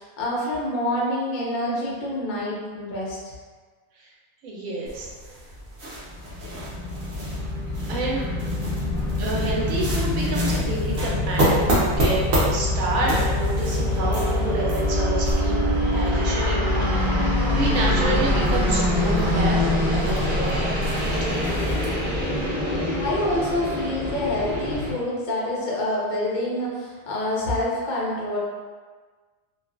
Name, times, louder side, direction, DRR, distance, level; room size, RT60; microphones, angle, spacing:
voice 1, 0.0-3.2 22.9-28.4, left 1 dB, 60° left, -5 dB, 0.5 m, -27 dB
voice 2, 4.4-5.1 7.9-8.2 9.2-21.3, right 2 dB, 75° right, -4 dB, 1.0 m, -29 dB
sound 1, 4.8-22.5, equal, 55° right, 0.6 m, -30 dB
sound 2, 6.1-24.9, left 1 dB, 20° right, 0.9 m, -24 dB
2.5 x 2.3 x 2.4 m, 1.5 s
omnidirectional pair, 1.6 m